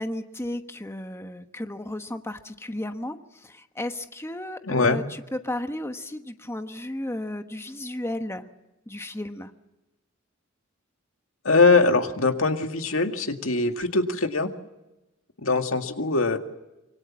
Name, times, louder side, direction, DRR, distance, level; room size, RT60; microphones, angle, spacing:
voice 1, 0.0-8.4 8.9-9.5, left 1 dB, 15° left, 7 dB, 1.2 m, -34 dB
voice 2, 4.6-5.0 11.4-14.5 15.4-16.4, left 3 dB, 85° left, 6 dB, 2.1 m, -22 dB
25.5 x 24.5 x 7.3 m, 1.0 s
head